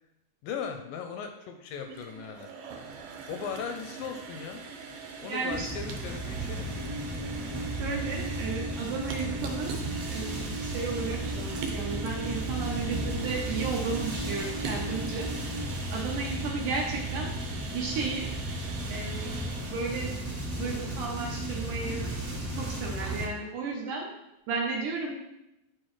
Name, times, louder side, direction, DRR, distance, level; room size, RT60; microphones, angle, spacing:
voice 1, 0.4-2.5 3.3-4.6 5.2-6.7, left 7 dB, 80° left, 5 dB, 2.1 m, -38 dB
sound 1, 1.7-20.0, right 5 dB, 85° right, 2.6 m, -42 dB
voice 2, 5.2-5.7 7.8-9.7 10.1-15.3 15.9-17.3 17.7-18.3 18.9-20.1 20.6-24.1 24.5-25.2, right 4 dB, 70° right, -1 dB, 2.0 m, -34 dB
sound 2, 5.5-23.2, right 1 dB, 40° right, 1.2 m, -35 dB
Alarm, 6.7-15.6, right 2 dB, 15° right, 1.1 m, -40 dB
9.0 x 4.5 x 3.1 m, 0.90 s
omnidirectional pair, 4.2 m